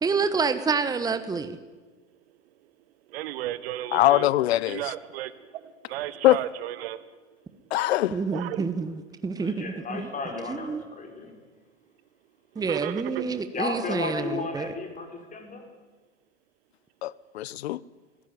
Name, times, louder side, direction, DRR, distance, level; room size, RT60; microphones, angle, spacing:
voice 1, 0.0-1.6 8.1-10.1 10.5-10.8 12.5-14.7, right 5 dB, 10° right, 1.2 m, -28 dB
voice 2, 3.1-4.3 4.6-7.1 8.3-8.7 12.5-13.3, right 14 dB, 55° right, 1.3 m, -34 dB
voice 3, 3.9-4.8 6.2-6.4 7.7-8.2 17.0-17.8, left 15 dB, 55° left, 0.8 m, -22 dB
voice 4, 9.3-11.3 13.5-15.7, left 3 dB, 20° left, 4.7 m, -34 dB
21.0 x 16.0 x 9.5 m
figure-of-eight pair, 100°, 37 cm